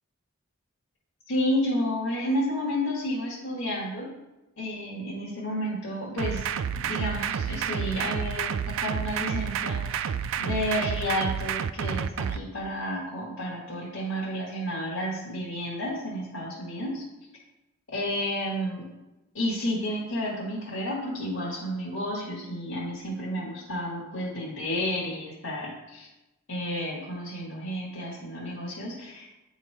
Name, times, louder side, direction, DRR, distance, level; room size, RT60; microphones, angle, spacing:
voice 1, 1.3-4.1 4.6-10.1 10.4-17.1 17.9-18.9 19.3-26.1 26.5-29.3, equal, 65° left, -6 dB, 1.7 m, -31 dB
sound 1, 6.2-12.4, right 8 dB, 70° right, 0.3 m, -30 dB
9.4 x 3.2 x 4.4 m, 0.97 s
head